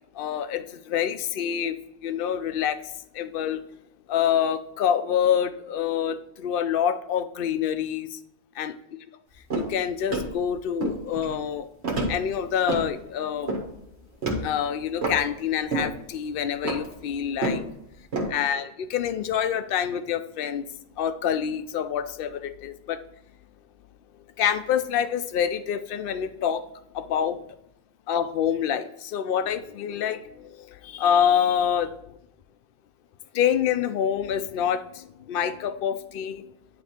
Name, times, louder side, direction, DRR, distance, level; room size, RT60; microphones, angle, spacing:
voice 1, 0.1-1.8 2.0-3.6 4.1-8.2 8.6-8.7 9.5-11.7 12.1-13.6 14.4-17.6 18.3-20.7 21.0-23.0 24.4-26.6 26.9-27.4 28.1-32.1 33.3-36.4, left 9 dB, 65° left, 11 dB, 0.7 m, -26 dB
sound 1, 9.5-9.8 10.1-10.4 10.8-11.4 11.8-12.9 13.4-13.7 14.2-14.5 15.0-15.2 15.7-16.0 16.3-17.7 18.1-18.3, right 2 dB, 90° right, 1.6 m, -29 dB
9.9 x 3.4 x 4.2 m, 0.81 s
omnidirectional pair, 1.1 m